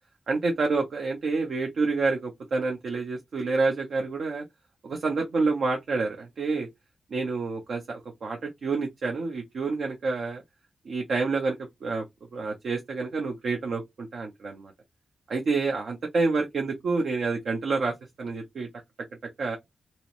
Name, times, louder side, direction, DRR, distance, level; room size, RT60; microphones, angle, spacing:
voice 1, 0.3-4.4 4.8-6.7 7.1-10.4 10.8-12.0 12.3-14.7 15.3-18.7 19.4-19.6, right 3 dB, 75° right, 0.6 m, -28 dB
2.8 x 2.0 x 2.5 m
supercardioid pair, 40°, 0 cm